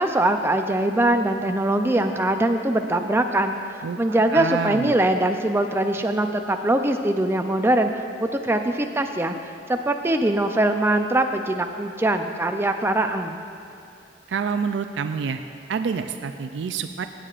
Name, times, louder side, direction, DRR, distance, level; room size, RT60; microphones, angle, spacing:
voice 1, 0.0-9.4 9.7-13.4, right 1 dB, 15° right, 6 dB, 0.4 m, -22 dB
voice 2, 4.3-4.9 14.3-15.4 15.7-17.1, right 6 dB, 80° right, 8 dB, 0.4 m, -27 dB
16.5 x 8.3 x 2.5 m, 2.6 s
head